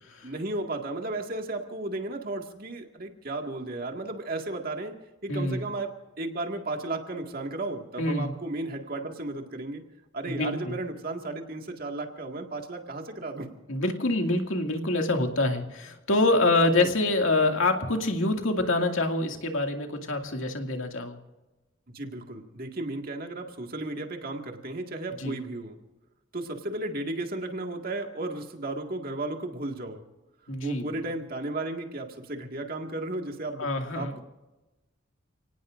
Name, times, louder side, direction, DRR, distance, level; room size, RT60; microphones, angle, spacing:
voice 1, 0.2-5.0 5.2-9.8 10.1-13.5 16.8-16.9 21.9-25.8 26.3-30.0 30.6-33.7 34.0-34.2, right 2 dB, 45° right, 3 dB, 1.9 m, -34 dB
voice 2, 5.3-5.6 8.0-8.3 10.3-10.8 13.7-21.2 25.2-25.4 30.5-30.8 33.6-34.2, left 2 dB, 90° left, 3 dB, 2.3 m, -26 dB
30.0 x 18.5 x 2.6 m, 1.1 s
head